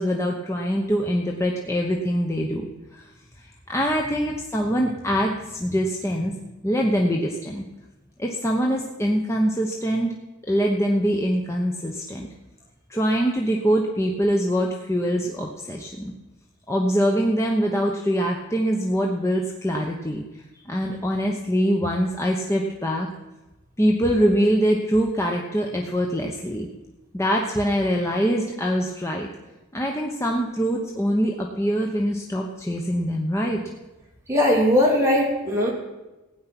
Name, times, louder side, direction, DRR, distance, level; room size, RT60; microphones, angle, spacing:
voice 1, 0.0-2.6 2.9-3.1 3.7-6.3 6.6-7.6 8.2-10.1 10.5-12.3 12.9-16.1 16.7-20.2 20.7-23.1 23.8-26.7 27.1-29.3 29.7-33.6, equal, 15° left, 0 dB, 0.9 m, -23 dB
voice 2, 34.3-35.7, left 1 dB, 15° right, -3 dB, 3.1 m, -19 dB
16.0 x 9.5 x 6.0 m, 1.1 s
head